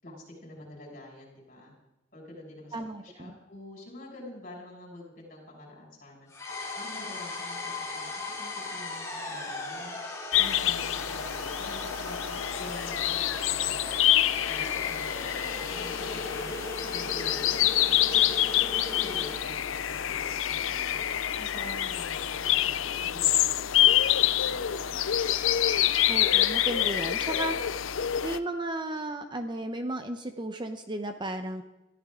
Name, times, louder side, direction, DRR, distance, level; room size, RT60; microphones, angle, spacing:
voice 1, 0.0-1.7 2.1-6.3 6.7-10.0 10.4-14.1 14.4-16.5 16.9-18.5 18.9-21.0 21.4-25.1, left 1 dB, 40° left, -1 dB, 6.6 m, -47 dB
voice 2, 2.7-3.3 26.1-27.7 28.2-31.6, right 1 dB, 20° right, 7 dB, 0.9 m, -34 dB
sound 1, 6.3-19.5, left 2 dB, 15° left, 2.9 m, -38 dB
sound 2, 10.3-28.4, left 12 dB, 70° left, 0.6 m, -27 dB
22.0 x 14.0 x 3.8 m, 0.99 s
head